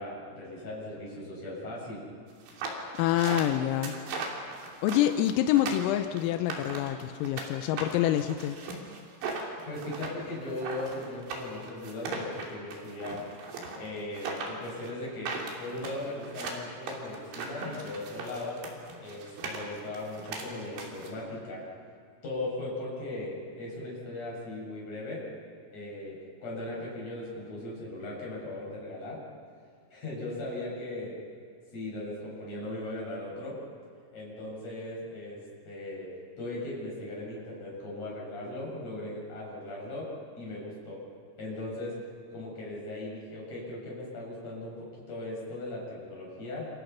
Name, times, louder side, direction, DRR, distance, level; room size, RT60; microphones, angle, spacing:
voice 1, 0.0-2.0 9.7-13.2 13.8-18.6 19.0-21.6 22.2-25.3 25.7-29.2 29.9-31.2 31.7-33.6 34.1-36.1 36.4-40.1 40.4-41.0 41.4-42.0 42.3-46.7, left 2 dB, 30° left, -4 dB, 8.7 m, -38 dB
sound 1, 2.4-7.5 7.8-21.1, right 4 dB, 65° right, 5.2 m, -38 dB
voice 2, 3.0-4.0 4.8-8.6, left 12 dB, 90° left, 8 dB, 3.5 m, -26 dB
28.5 x 28.0 x 5.9 m, 2.2 s
omnidirectional pair, 5.9 m